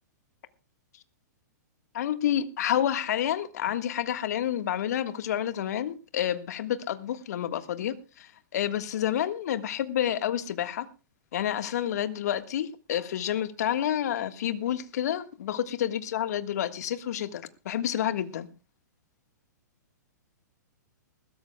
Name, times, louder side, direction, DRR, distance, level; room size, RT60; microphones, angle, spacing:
voice 1, 1.9-10.9 11.3-18.5, left 10 dB, 60° left, 1.6 m, -29 dB
21.0 x 16.0 x 2.3 m
figure-of-eight pair, 115°, 10 cm